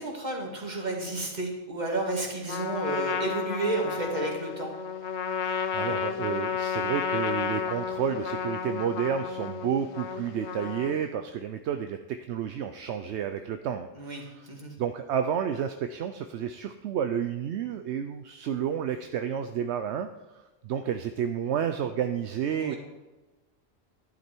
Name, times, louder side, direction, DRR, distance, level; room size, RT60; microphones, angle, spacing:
voice 1, 0.0-4.7 13.9-14.7 22.5-22.8, right 2 dB, 40° right, 0 dB, 2.4 m, -32 dB
Trumpet, 2.5-11.2, left 6 dB, 75° left, 1.1 m, -32 dB
voice 2, 5.4-14.5 14.8-22.7, right 8 dB, 75° right, 8 dB, 0.9 m, -31 dB
11.5 x 11.0 x 4.5 m, 1.1 s
omnidirectional pair, 1.2 m